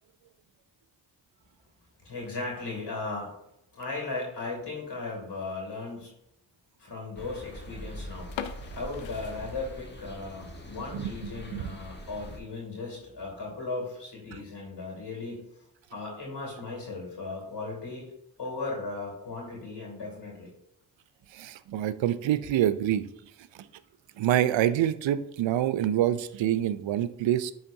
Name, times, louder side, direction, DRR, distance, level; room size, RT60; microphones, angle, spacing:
voice 1, 2.0-3.3 3.7-6.1 6.8-8.4 8.7-15.4 15.9-18.1 18.4-20.5, left 3 dB, 65° left, -2 dB, 2.5 m, -37 dB
sound 1, 7.1-12.4, equal, 25° left, 1.2 m, -43 dB
sound 2, 8.3-10.2 10.5-10.6 11.1-11.3 11.7-11.8 12.1-12.2 12.9-13.2, left 8 dB, 80° left, 0.6 m, -41 dB
voice 2, 10.9-11.7 21.3-23.1 24.2-27.5, right 11 dB, 80° right, 14 dB, 0.5 m, -26 dB
10.0 x 3.8 x 2.7 m, 0.79 s
cardioid pair, 55°, 44 cm